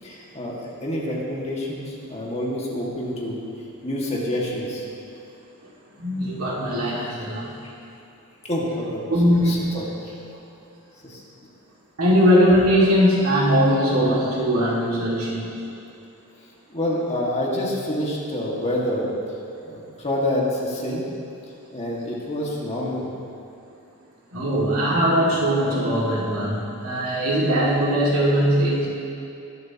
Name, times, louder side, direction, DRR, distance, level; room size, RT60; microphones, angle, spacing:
voice 1, 0.0-3.4 3.8-4.8 8.4-9.1 9.4-10.2 11.0-11.2 16.4-19.1 19.6-21.1 21.7-23.1, left 1 dB, 30° left, -5 dB, 2.0 m, -27 dB
voice 2, 6.0-7.5 9.1-9.7 12.0-15.5 24.3-28.9, equal, 70° right, -5 dB, 2.3 m, -20 dB
21.5 x 7.9 x 3.0 m, 2.7 s
head